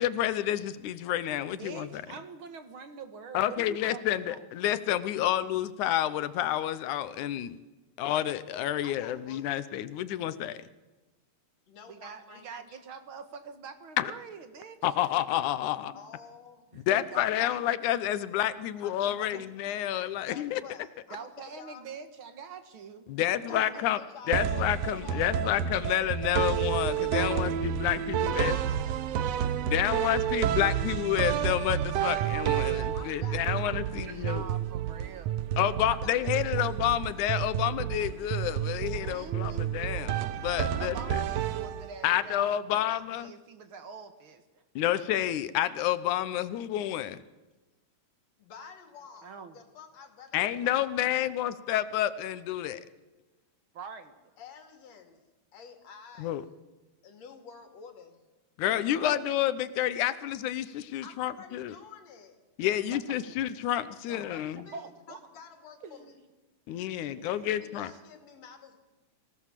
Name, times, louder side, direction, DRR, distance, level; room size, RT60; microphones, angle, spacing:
voice 1, 0.0-2.0 3.3-7.6 8.0-10.6 14.0-14.1 14.8-15.9 16.9-20.6 23.1-24.0 24.3-28.6 29.6-34.4 35.6-41.0 42.0-43.3 44.8-47.2 50.3-52.9 56.2-56.5 58.6-61.8 62.6-64.6 66.7-67.9, left 12 dB, 80° left, 14 dB, 2.2 m, -29 dB
voice 2, 1.5-4.4 11.9-14.9 15.9-16.0 16.7-17.6 19.3-19.4 21.1-23.1 23.4-23.8 27.2-28.4 29.6-30.0 32.3-32.4 34.0-35.5 39.0-39.7 40.8-44.6 49.2-49.6 53.7-54.3 59.0-59.2 62.8-63.2 64.1-64.3 64.7-65.2 65.8-66.3 67.2-67.6, right 5 dB, 50° right, 9 dB, 2.1 m, -45 dB
voice 3, 8.8-9.5 11.7-12.8 15.9-16.8 18.8-19.5 20.3-21.8 23.5-25.6 28.4-29.1 32.6-34.1 36.0-36.1 36.6-36.7 48.4-50.9 54.4-55.2 55.5-56.5 57.0-58.3 61.0-62.4 64.1-66.1 67.6-68.8, left 6 dB, 60° left, 5 dB, 3.6 m, -49 dB
sound 1, 24.3-42.1, right 10 dB, 70° right, 1.8 m, -30 dB
24.0 x 17.0 x 7.4 m, 1.2 s
omnidirectional pair, 3.5 m